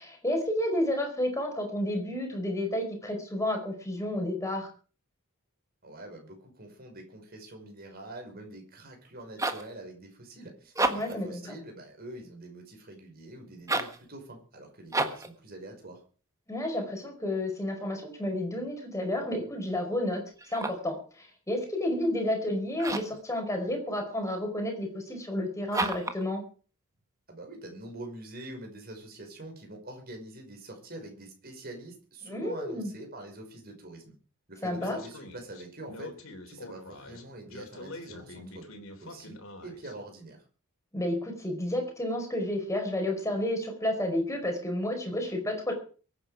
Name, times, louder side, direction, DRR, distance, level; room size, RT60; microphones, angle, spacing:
voice 1, 0.0-4.7 10.9-11.5 16.5-20.2 20.5-26.4 32.2-32.9 34.6-35.0 40.9-45.7, left 1 dB, 15° left, 3 dB, 5.0 m, -31 dB
voice 2, 5.8-16.0 27.3-34.1 34.5-36.2 36.5-38.7 39.0-40.4, right 2 dB, 45° right, 3 dB, 5.5 m, -45 dB
sound 1, 9.1-9.7 10.6-11.2 13.6-14.0 14.9-15.3 20.4-20.9 22.8-23.2 25.7-26.2, right 2 dB, 15° right, 1.4 m, -31 dB
Speech, 34.7-39.9, left 2 dB, 65° left, 3.6 m, -45 dB
23.5 x 9.7 x 5.0 m, 0.40 s
head